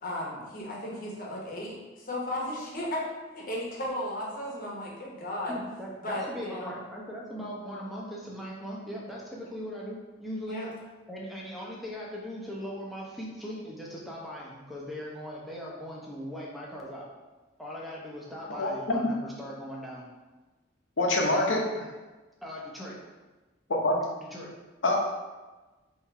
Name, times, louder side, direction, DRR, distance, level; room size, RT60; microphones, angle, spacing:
voice 1, 0.0-3.0 3.3-5.5 6.0-6.8 10.5-10.7, left 1 dB, 50° left, -3 dB, 1.0 m, -35 dB
voice 2, 5.5-10.7 11.1-17.1 17.6-20.0 22.4-23.1 24.2-24.5, equal, ahead, -4 dB, 0.8 m, -39 dB
voice 3, 18.6-19.0 21.0-21.9 23.7-24.0 24.8-25.0, left 2 dB, 75° left, 0 dB, 0.8 m, -25 dB
3.4 x 3.1 x 4.6 m, 1.2 s
head